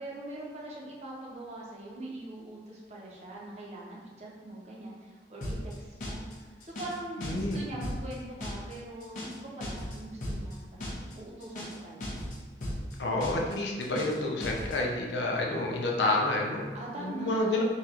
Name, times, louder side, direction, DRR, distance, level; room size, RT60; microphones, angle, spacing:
voice 1, 0.0-12.3 16.7-17.6, right 1 dB, 35° right, -4 dB, 0.8 m, -42 dB
sound 1, 5.4-5.7 6.0-6.3 6.6-7.0 7.2-7.6 7.8-8.1 8.4-8.7 9.0-9.4 9.6-10.0 10.2-10.5 10.8-11.1 11.4-11.8 12.0-12.4 12.6-12.9 13.2-13.5 13.8-14.2 14.4-14.8, left 1 dB, 45° left, 1.1 m, -36 dB
voice 2, 7.2-7.6 13.0-17.6, left 2 dB, 75° left, -1 dB, 0.6 m, -29 dB
4.0 x 2.5 x 4.3 m, 1.4 s
head